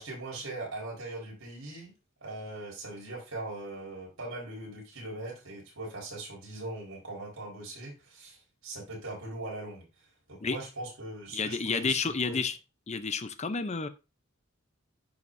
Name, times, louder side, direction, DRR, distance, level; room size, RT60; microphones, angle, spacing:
voice 1, 0.0-1.9 2.2-12.4, right 2 dB, 80° right, -2 dB, 4.5 m, -40 dB
voice 2, 11.3-12.6 12.9-13.9, left 5 dB, 35° left, 11 dB, 0.7 m, -30 dB
11.0 x 5.8 x 2.7 m, 0.27 s
head